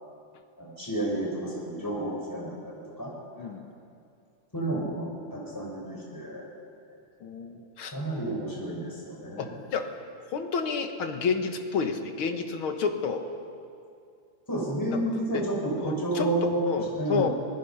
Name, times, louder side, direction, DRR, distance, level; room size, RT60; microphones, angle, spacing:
voice 1, 0.6-3.1 3.4-3.5 4.5-6.5 7.9-9.6 14.5-16.6 16.9-17.3, right 1 dB, 10° left, -3 dB, 5.5 m, -31 dB
voice 2, 3.4-3.7 7.2-7.9 9.4-9.9 10.3-13.3 15.3-15.4 15.8-16.3 16.7-17.3, left 5 dB, 90° left, 6 dB, 2.3 m, -30 dB
26.0 x 21.0 x 5.7 m, 2.4 s
omnidirectional pair, 2.2 m